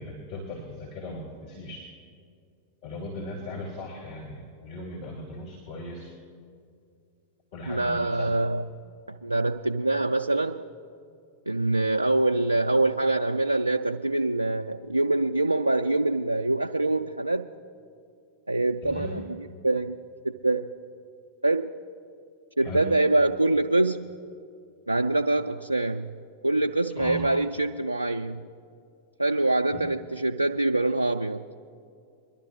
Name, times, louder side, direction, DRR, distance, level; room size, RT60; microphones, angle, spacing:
voice 1, 0.0-1.8 2.8-6.1 7.5-8.4 18.8-19.2 22.6-22.9 27.0-27.3 29.7-29.8, left 1 dB, 55° left, -5 dB, 3.2 m, -38 dB
voice 2, 7.7-8.6 9.1-10.6 11.5-17.5 18.5-20.0 20.2-20.7 21.4-21.7 22.6-24.1 24.9-26.2 26.4-28.4 29.2-31.4, right 2 dB, 85° right, 5 dB, 0.3 m, -25 dB
23.5 x 11.5 x 3.0 m, 2.4 s
figure-of-eight pair, 90°, 0 cm